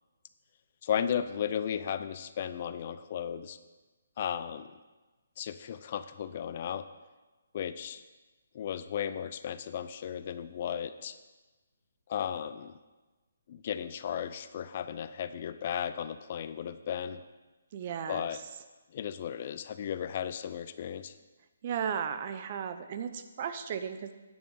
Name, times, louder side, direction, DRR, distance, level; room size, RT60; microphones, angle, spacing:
voice 1, 0.8-3.6 4.2-4.8 5.4-6.9 7.5-8.0 8.5-11.1 12.1-12.7 13.5-17.3 18.1-18.4 18.9-21.2, left 9 dB, 40° left, 13 dB, 0.5 m, -35 dB
voice 2, 17.7-18.4 21.6-24.1, right 7 dB, 35° right, 10 dB, 0.8 m, -35 dB
9.4 x 8.9 x 6.5 m, 1.2 s
hypercardioid pair, 160°, 0 cm